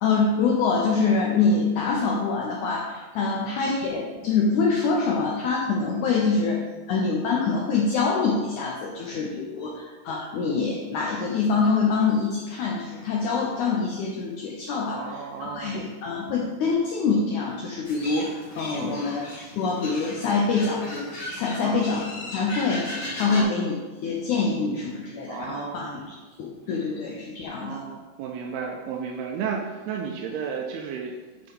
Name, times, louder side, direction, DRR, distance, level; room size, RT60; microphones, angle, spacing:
voice 1, 0.0-6.6 6.9-15.0 15.4-21.0 21.3-22.0 22.3-22.9 23.2-23.7 24.0-26.0 26.4-27.8, left 4 dB, 90° left, -2 dB, 1.7 m, -25 dB
voice 2, 8.9-9.3 9.6-9.9 14.9-15.8 18.7-19.1 21.6-21.9 23.3-23.6 25.3-26.1 27.5-31.5, right 6 dB, 90° right, 1 dB, 2.7 m, -34 dB
sound 1, 17.8-23.4, left 1 dB, 55° left, 0.9 m, -37 dB
9.4 x 3.9 x 5.1 m, 1.3 s
omnidirectional pair, 4.6 m